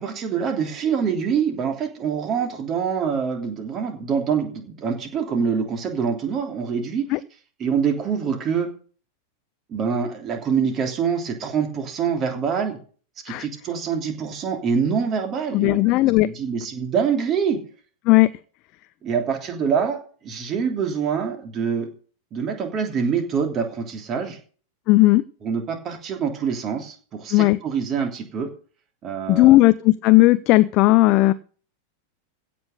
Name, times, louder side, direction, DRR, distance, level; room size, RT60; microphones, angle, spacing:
voice 1, 0.0-7.1 7.6-8.7 9.7-12.8 13.2-17.6 19.0-20.0 20.2-21.9 22.3-24.4 25.4-28.5 29.0-29.5, right 6 dB, 30° right, 4 dB, 3.2 m, -25 dB
voice 2, 15.5-16.3 18.1-18.3 24.9-25.2 27.3-27.6 29.3-31.3, left 19 dB, 40° left, 14 dB, 0.5 m, -16 dB
16.0 x 6.0 x 6.7 m, 0.41 s
figure-of-eight pair, 90°, 0 cm